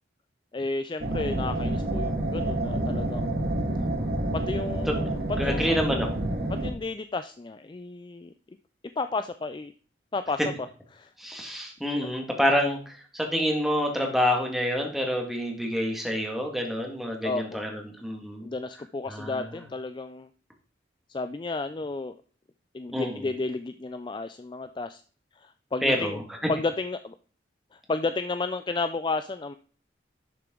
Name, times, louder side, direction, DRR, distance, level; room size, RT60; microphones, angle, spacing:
voice 1, 0.5-3.5 4.3-5.8 6.5-8.3 9.0-9.7 10.1-10.4 10.9-11.1 17.2-17.6 18.4-20.3 21.1-22.2 22.7-25.0 25.4-26.2 26.5-27.2 27.7-29.5, left 3 dB, 25° left, 11 dB, 0.3 m, -32 dB
sound 1, 1.0-6.7, right 1 dB, 55° right, 1.8 m, -28 dB
voice 2, 5.4-6.2 11.2-18.5 19.1-19.4 22.9-23.3 25.8-26.2, equal, ahead, 1 dB, 1.9 m, -27 dB
11.5 x 6.8 x 3.8 m, 0.41 s
head